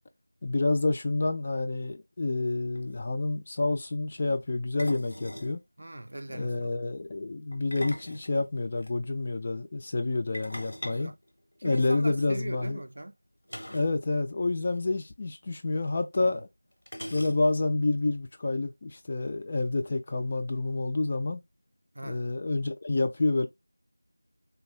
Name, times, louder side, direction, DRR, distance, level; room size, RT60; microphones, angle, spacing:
voice 1, 0.4-5.6 6.3-11.1 11.6-12.8 13.7-16.5 17.1-21.4 22.0-23.5, left 2 dB, 20° left, 0.3 m, -28 dB
sound 1, 2.5-2.6 2.7-3.0 4.8-5.6 7.5-8.9 10.3-12.0 13.5-14.0 14.2-14.3 14.7-14.8 15.8-15.9 16.9-17.7, equal, 70° left, 0.8 m, -42 dB
voice 2, 5.8-6.7 10.9-11.2 11.6-13.1 16.2-16.4 21.9-22.2, right 1 dB, 45° right, 0.4 m, -40 dB
3.3 x 2.3 x 3.1 m
figure-of-eight pair, 175°, 0 cm